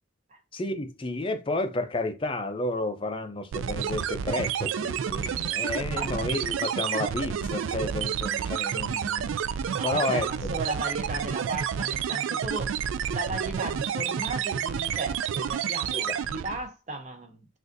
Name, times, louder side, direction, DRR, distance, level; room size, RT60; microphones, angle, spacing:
voice 1, 0.5-9.6 9.8-10.5 15.9-16.2, left 2 dB, 25° left, 0.4 m, -31 dB
sound 1, 3.5-16.7, right 8 dB, 80° right, 0.3 m, -30 dB
voice 2, 9.7-12.8 13.1-17.5, right 2 dB, 35° right, 0.7 m, -36 dB
6.1 x 2.5 x 2.6 m
head